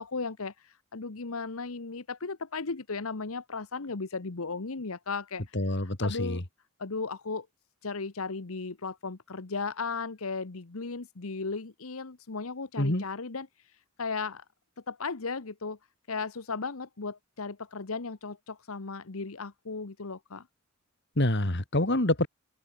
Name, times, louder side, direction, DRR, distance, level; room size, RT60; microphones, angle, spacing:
voice 1, 0.0-5.6 5.8-6.4 6.8-7.5 7.8-14.4 14.9-15.8 16.1-20.5, left 4 dB, 75° left, 1.1 m, -36 dB
voice 2, 5.5-6.4 12.8-13.0 21.2-22.3, left 1 dB, 50° left, 2.5 m, -26 dB
open air
head